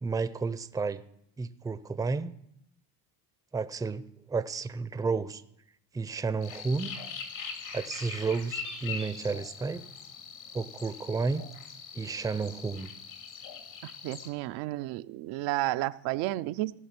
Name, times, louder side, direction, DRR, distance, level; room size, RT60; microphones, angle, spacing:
voice 1, 0.0-1.0 1.4-2.3 3.5-4.0 4.3-5.4 5.9-6.9 7.7-9.8 10.5-11.5 11.9-12.9, right 4 dB, 10° right, 13 dB, 0.4 m, -31 dB
sound 1, 6.4-14.3, left 6 dB, 80° left, 2.4 m, -42 dB
voice 2, 13.8-16.7, right 17 dB, 85° right, 12 dB, 0.5 m, -32 dB
16.5 x 6.0 x 5.9 m, 0.76 s
supercardioid pair, 100°, 43 cm